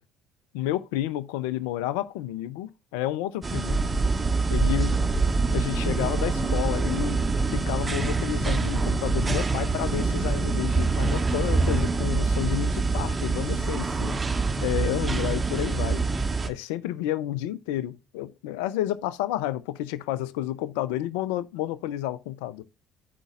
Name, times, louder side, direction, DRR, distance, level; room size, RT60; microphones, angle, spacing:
voice 1, 0.5-3.8 4.5-5.0 5.5-7.2 7.5-14.2 14.6-16.0 16.5-22.6, left 13 dB, 80° left, 0.5 m, -30 dB
sound 1, 3.4-16.5, right 3 dB, 30° right, 1.4 m, -25 dB
12.0 x 5.2 x 2.4 m
hypercardioid pair, 55°, 0 cm